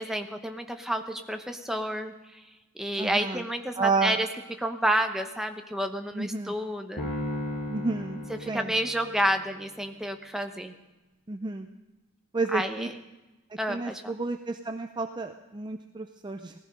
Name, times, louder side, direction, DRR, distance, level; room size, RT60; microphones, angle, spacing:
voice 1, 0.0-2.4 2.8-4.3 4.6-7.1 8.4-10.7 12.5-13.0 13.6-14.0, equal, ahead, 5 dB, 0.9 m, -30 dB
voice 2, 3.0-3.4 3.8-4.1 6.1-6.5 7.7-8.2 8.5-8.7 11.3-11.7 12.3-12.9 13.7-16.5, right 3 dB, 20° right, 7 dB, 0.5 m, -30 dB
sound 1, 7.0-9.4, left 1 dB, 40° left, 6.4 m, -35 dB
17.5 x 14.5 x 5.4 m, 1.1 s
head